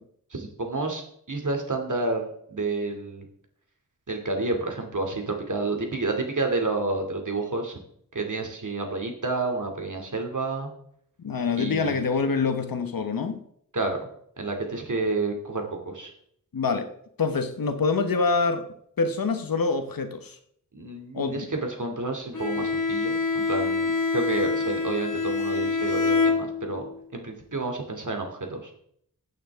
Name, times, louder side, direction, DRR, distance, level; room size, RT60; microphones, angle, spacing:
voice 1, 0.3-3.3 4.1-7.8 8.1-10.7 11.5-12.0 13.7-14.1 14.4-16.1 20.7-26.9 27.1-28.7, right 3 dB, 60° right, 2.4 m, -30 dB
voice 2, 11.2-13.4 16.5-16.9 17.2-18.7 19.0-20.4 21.1-21.5, left 4 dB, 90° left, 1.0 m, -25 dB
Bowed string instrument, 22.3-26.9, left 4 dB, 65° left, 1.9 m, -26 dB
16.0 x 8.5 x 3.5 m
wide cardioid pair, 50°, 34 cm